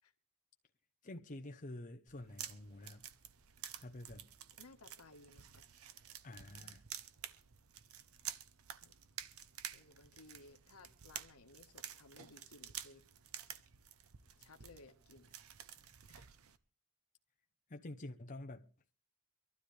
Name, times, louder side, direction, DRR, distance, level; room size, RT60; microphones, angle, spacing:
voice 1, 1.0-3.1 3.8-4.3 6.2-6.8 17.7-18.7, left 1 dB, 35° left, 0.8 m, -48 dB
sound 1, 2.1-16.6, right 10 dB, 65° right, 0.8 m, -51 dB
voice 2, 4.6-5.7 6.4-6.8 8.8-8.9 9.7-13.0 14.4-15.3 15.8-16.3, left 3 dB, 80° left, 1.4 m, -60 dB
24.0 x 12.5 x 3.3 m
head